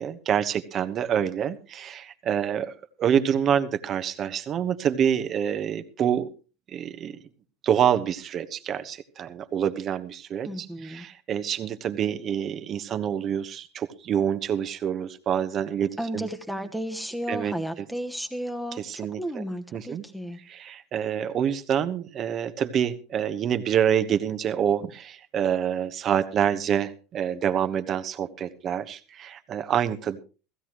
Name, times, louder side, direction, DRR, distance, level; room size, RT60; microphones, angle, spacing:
voice 1, 0.0-2.7 3.0-6.3 6.7-7.2 7.6-16.3 17.3-17.5 18.9-19.4 19.7-20.0 20.5-30.2, right 9 dB, 40° right, 11 dB, 1.2 m, -27 dB
voice 2, 10.4-11.1 16.0-20.4, equal, ahead, 3 dB, 1.1 m, -33 dB
16.0 x 15.5 x 3.1 m, 0.33 s
hypercardioid pair, 85°, 0 cm